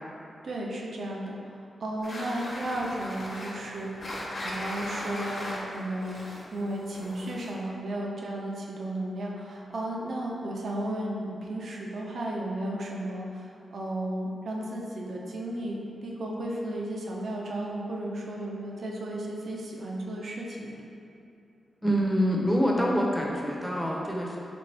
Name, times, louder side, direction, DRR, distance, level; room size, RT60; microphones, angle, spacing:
voice 1, 0.4-1.4 1.8-3.9 4.4-6.2 6.5-20.8, right 1 dB, 65° right, -2 dB, 0.6 m, -34 dB
sound 1, 2.0-7.7, left 1 dB, 50° left, 1.0 m, -38 dB
voice 2, 21.8-24.4, equal, ahead, -2 dB, 0.6 m, -26 dB
4.3 x 3.5 x 3.2 m, 2.6 s
wide cardioid pair, 105°, 0 cm